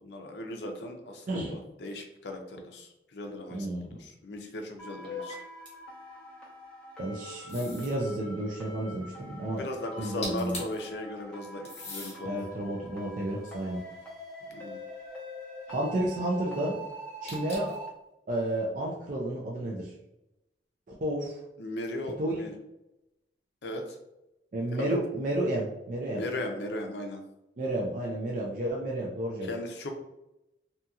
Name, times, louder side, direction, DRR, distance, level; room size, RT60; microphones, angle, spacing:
voice 1, 0.0-5.4 9.4-12.4 14.5-14.8 21.6-22.6 23.6-24.0 24.7-25.0 26.2-27.2 29.4-29.9, left 1 dB, 65° left, 4 dB, 0.5 m, -37 dB
voice 2, 3.5-4.0 7.0-9.6 10.0-10.6 12.2-13.8 15.7-16.8 17.2-17.8 18.3-19.9 21.0-21.3 22.2-22.4 24.5-26.2 27.6-29.5, right 1 dB, 45° right, -3 dB, 0.4 m, -31 dB
sound 1, 4.8-17.9, right 1 dB, 5° left, 0.8 m, -45 dB
sound 2, 5.0-5.7 7.8-7.9 9.9-10.5, left 5 dB, 30° right, 0.9 m, -40 dB
sound 3, 7.5-8.0 10.0-10.1 10.2-10.8 11.6-12.2 12.9-14.3 17.3-17.8, left 2 dB, 35° left, 1.0 m, -41 dB
2.7 x 2.7 x 2.3 m, 0.91 s
head